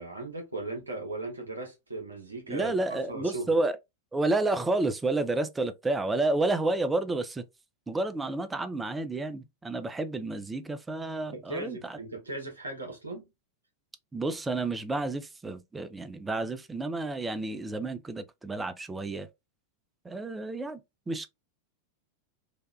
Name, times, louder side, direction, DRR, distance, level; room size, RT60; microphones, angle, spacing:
voice 1, 0.0-3.5 10.2-10.3 11.2-13.2, right 2 dB, 80° right, 0.9 m, -38 dB
voice 2, 2.5-3.7 4.1-7.4 7.9-12.0 14.1-19.3 20.1-20.8 21.1-21.3, right 2 dB, 10° right, 0.4 m, -30 dB
3.3 x 2.2 x 2.3 m
figure-of-eight pair, 90°, 0 cm